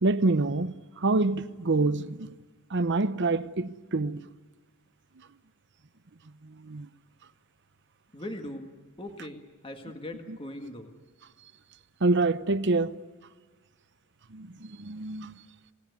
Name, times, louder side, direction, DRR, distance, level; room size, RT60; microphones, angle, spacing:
voice 1, 0.0-2.3 2.7-4.2 6.4-6.9 12.0-13.0 14.3-15.3, right 3 dB, 55° right, 0.8 m, -26 dB
voice 2, 8.1-8.7 9.0-11.0, left 1 dB, 25° left, 1.8 m, -40 dB
27.0 x 18.0 x 9.4 m
head